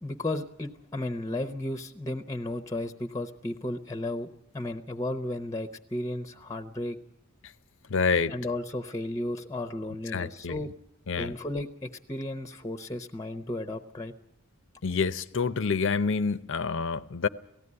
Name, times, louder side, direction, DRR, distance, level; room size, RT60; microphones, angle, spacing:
voice 1, 0.0-7.0 8.3-10.7 11.2-14.1, left 1 dB, 15° left, 0.8 m, -34 dB
voice 2, 7.9-8.4 10.1-10.6 11.1-11.3 14.8-17.3, left 5 dB, 60° left, 0.7 m, -27 dB
18.0 x 15.5 x 9.7 m
head